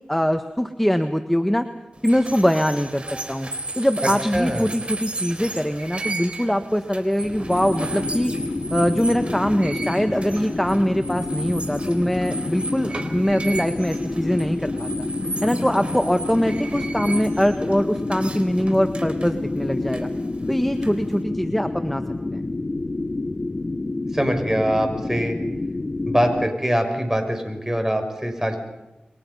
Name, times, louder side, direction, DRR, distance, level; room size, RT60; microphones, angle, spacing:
voice 1, 0.1-1.7 2.0-3.0 3.3-3.5 3.8-8.3 8.7-14.9 15.4-20.1 20.5-22.0 22.3-22.5, equal, 5° left, 7 dB, 1.4 m, -22 dB
sound 1, 1.9-21.2, right 2 dB, 40° right, 4.0 m, -35 dB
voice 2, 4.0-4.7 24.1-25.4 26.1-28.6, equal, 15° right, 5 dB, 5.8 m, -23 dB
sound 2, 7.2-26.5, left 2 dB, 40° left, 0.8 m, -29 dB
29.0 x 23.0 x 5.6 m, 1.0 s
wide cardioid pair, 60°, 3 cm